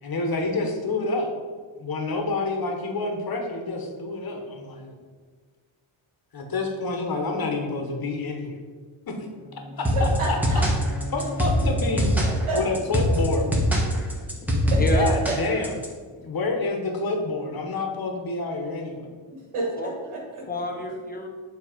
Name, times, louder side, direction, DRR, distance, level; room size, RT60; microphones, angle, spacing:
voice 1, 0.0-1.3 1.8-4.9 6.3-8.6 9.8-10.6 11.1-12.1 12.5-13.5 14.9-15.7 16.2-19.0, left 3 dB, 45° left, 2 dB, 1.1 m, -28 dB
sound 1, 9.3-12.9, left 1 dB, 70° left, 1.0 m, -37 dB
sound 2, 9.8-15.9, equal, 5° right, 1.0 m, -22 dB
voice 2, 9.9-10.6 11.6-11.7 11.9-12.6 14.6-15.3 19.3-20.4, right 2 dB, 90° right, -2 dB, 1.5 m, -30 dB
voice 3, 13.9-15.1 16.1-16.2 19.0-19.1 19.8-19.9 20.5-21.3, left 3 dB, 20° left, 2 dB, 0.8 m, -32 dB
7.5 x 3.2 x 5.0 m, 1.5 s
wide cardioid pair, 130°, 49 cm